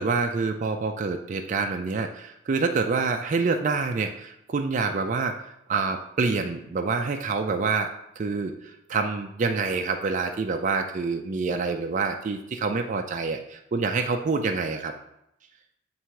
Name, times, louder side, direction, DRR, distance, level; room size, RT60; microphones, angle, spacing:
voice 1, 0.0-5.4 5.7-7.9 8.2-14.9, right 4 dB, 40° right, 4 dB, 0.4 m, -27 dB
7.3 x 3.3 x 4.7 m, 0.80 s
head